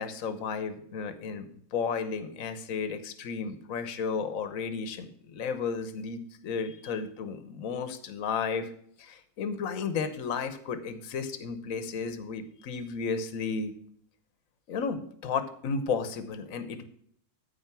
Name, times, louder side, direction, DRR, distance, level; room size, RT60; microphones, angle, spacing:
voice 1, 0.0-8.7 9.0-13.7 14.7-16.8, left 5 dB, 50° left, 10 dB, 1.3 m, -33 dB
14.0 x 4.7 x 6.0 m, 0.63 s
omnidirectional pair, 2.1 m